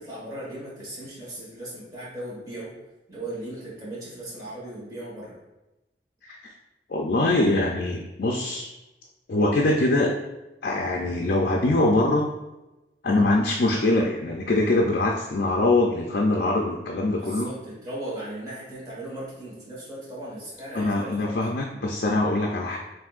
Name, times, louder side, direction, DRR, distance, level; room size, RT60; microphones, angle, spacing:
voice 1, 0.0-2.7 3.1-5.3 13.0-13.2 17.1-21.4, right 1 dB, 20° right, -8 dB, 1.4 m, -37 dB
voice 2, 6.9-8.7 9.3-10.2 10.6-12.3 13.0-17.5 20.7-22.8, left 2 dB, 55° left, 0 dB, 0.5 m, -23 dB
7.2 x 2.6 x 2.4 m, 1.0 s
head